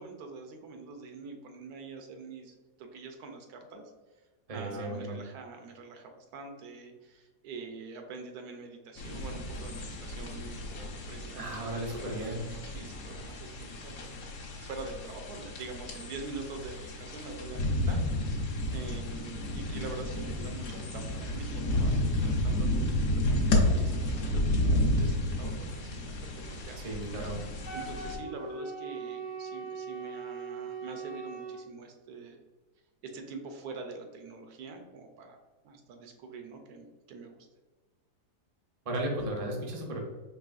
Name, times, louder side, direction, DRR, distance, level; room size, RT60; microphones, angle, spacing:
voice 1, 0.0-3.8 4.5-27.3 27.7-32.4 33.0-35.4 35.6-37.5, right 4 dB, 75° right, 5 dB, 1.1 m, -45 dB
voice 2, 4.5-5.2 11.4-12.4 26.8-27.4 38.8-40.0, right 1 dB, 55° right, -1 dB, 0.4 m, -35 dB
sound 1, 9.0-28.2, left 1 dB, 65° left, 1.1 m, -31 dB
Wind instrument woodwind instrument, 27.6-31.6, right 4 dB, 80° left, 0.4 m, -40 dB
4.7 x 3.0 x 2.4 m, 1.3 s
omnidirectional pair, 1.8 m